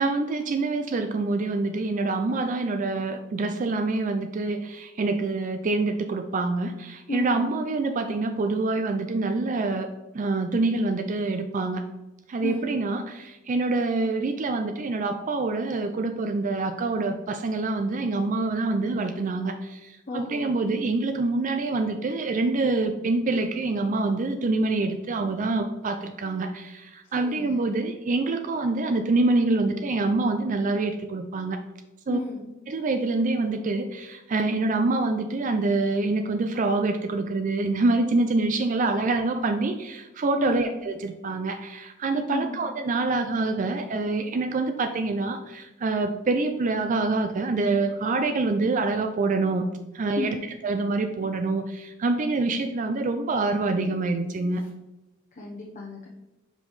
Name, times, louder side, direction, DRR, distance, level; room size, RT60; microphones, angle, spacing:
voice 1, 0.0-9.9 10.1-11.9 12.3-31.6 32.1-32.2 32.7-49.7 49.9-50.4 50.6-54.6, right 3 dB, 40° right, 7 dB, 0.4 m, -26 dB
voice 2, 7.1-7.4 12.4-12.7 20.1-20.5 27.2-27.6 32.1-32.4 40.4-40.7 42.3-42.6 50.2-50.5 55.4-56.1, left 2 dB, 40° left, -3 dB, 0.9 m, -33 dB
5.4 x 4.8 x 4.0 m, 1.0 s
head